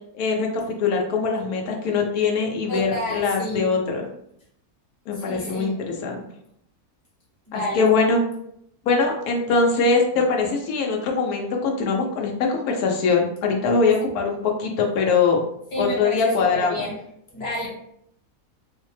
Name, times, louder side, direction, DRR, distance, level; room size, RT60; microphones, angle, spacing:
voice 1, 0.1-4.1 5.1-6.2 7.5-8.2 8.9-15.4 15.8-16.8, left 4 dB, 85° left, 1 dB, 1.1 m, -22 dB
voice 2, 2.7-3.7 5.2-6.0 7.5-7.8 15.7-16.2 16.5-17.0 17.3-17.7, left 2 dB, 35° left, -4 dB, 1.3 m, -30 dB
4.1 x 2.1 x 3.1 m, 0.72 s
omnidirectional pair, 1.6 m